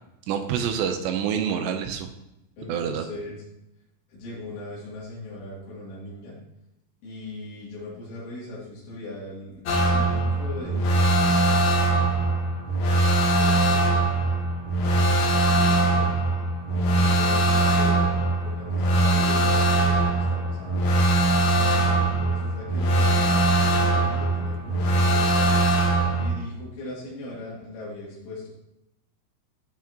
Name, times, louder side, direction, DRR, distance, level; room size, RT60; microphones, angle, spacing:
voice 1, 0.3-2.1 2.7-3.1, right 8 dB, 85° right, 6 dB, 2.8 m, -27 dB
voice 2, 2.6-3.4 4.1-6.4 7.0-9.6 9.9-10.9 13.4-13.9 15.7-16.2 16.8-20.9 21.4-25.7 26.2-28.5, left 2 dB, 85° left, -7 dB, 5.1 m, -39 dB
sound 1, 9.7-26.3, right 2 dB, 65° left, 1.9 m, -21 dB
13.0 x 6.1 x 2.9 m, 0.87 s
omnidirectional pair, 5.2 m